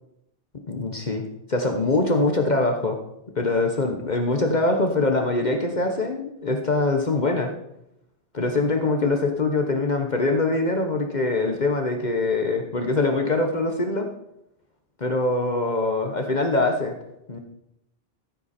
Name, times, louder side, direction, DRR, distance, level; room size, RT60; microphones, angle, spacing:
voice 1, 0.7-1.2 1.5-3.0 3.3-7.5 8.3-14.1 15.0-16.9 17.3-17.4, left 2 dB, 45° left, 4 dB, 1.2 m, -23 dB
14.5 x 8.1 x 4.3 m, 0.81 s
omnidirectional pair, 1.1 m